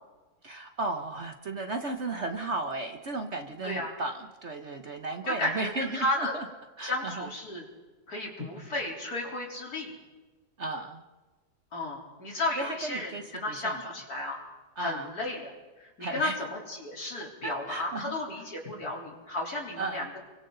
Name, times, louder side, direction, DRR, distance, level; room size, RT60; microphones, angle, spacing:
voice 1, 0.4-6.4 6.8-7.3 10.6-11.0 12.6-13.9 14.8-15.1 16.0-16.4 17.4-18.2 19.8-20.1, right 3 dB, 45° right, 6 dB, 1.2 m, -35 dB
voice 2, 5.3-6.4 6.8-7.6 8.1-9.9 11.7-14.4 14.8-20.1, left 2 dB, 60° left, -1 dB, 4.3 m, -33 dB
28.5 x 24.0 x 4.0 m, 1.2 s
omnidirectional pair, 1.8 m